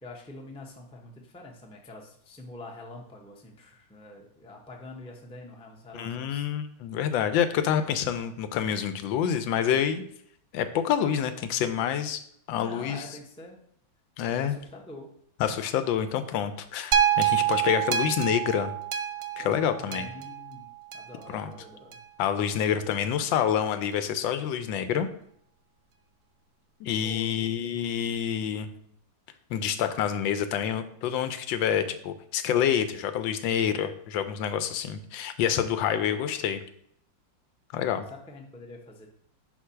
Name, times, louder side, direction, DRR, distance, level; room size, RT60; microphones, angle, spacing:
voice 1, 0.0-6.5 12.6-13.6 14.4-15.1 19.7-20.7 20.9-22.0 27.0-27.6 36.0-36.3 38.1-39.1, left 2 dB, 10° left, 0 dB, 0.3 m, -45 dB
voice 2, 5.9-10.0 10.5-12.2 12.5-13.0 14.2-14.6 15.4-18.7 19.4-20.1 21.3-21.5 22.2-25.1 26.8-28.7 29.5-36.6 37.7-38.1, left 9 dB, 85° left, 10 dB, 1.3 m, -27 dB
sound 1, 16.9-21.2 21.9-22.0, right 10 dB, 70° right, 1.1 m, -27 dB
4.6 x 4.4 x 5.7 m, 0.69 s
omnidirectional pair, 2.1 m